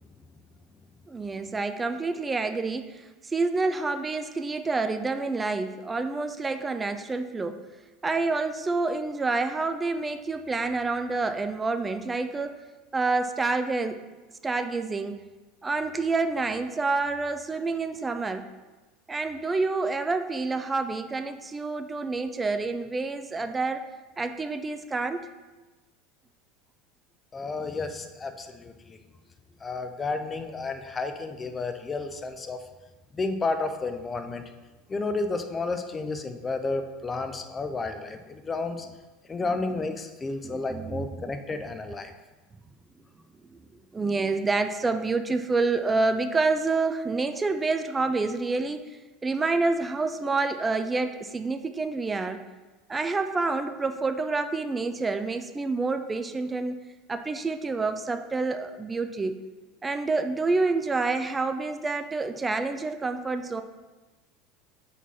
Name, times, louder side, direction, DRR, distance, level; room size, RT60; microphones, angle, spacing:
voice 1, 1.1-7.6 8.0-12.6 12.9-14.0 14.4-15.2 15.6-18.5 19.1-23.8 24.2-25.3 40.4-41.3 43.9-48.9 49.2-52.4 52.9-56.8 57.1-59.4 59.8-63.6, right 3 dB, 20° right, 8 dB, 0.4 m, -28 dB
voice 2, 27.3-29.0 29.6-32.6 33.1-34.4 34.9-38.9 39.3-42.1, left 3 dB, 25° left, 7 dB, 0.6 m, -31 dB
4.6 x 4.0 x 5.6 m, 1.2 s
figure-of-eight pair, 75°, 0 cm